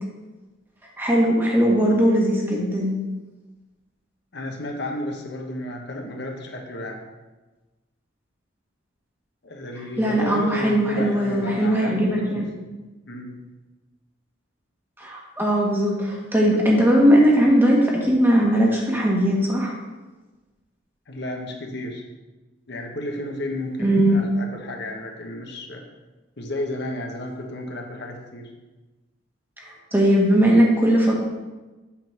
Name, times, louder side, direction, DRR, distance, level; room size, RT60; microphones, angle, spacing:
voice 1, 1.0-3.0 10.0-12.5 15.0-19.7 23.8-24.3 29.6-29.7 29.9-31.2, equal, 10° right, -3 dB, 1.4 m, -19 dB
voice 2, 4.3-7.0 9.4-12.5 13.0-13.4 21.1-22.0 22.7-25.8 26.4-28.5, left 1 dB, 60° left, 1 dB, 1.3 m, -33 dB
8.4 x 3.9 x 6.0 m, 1.2 s
head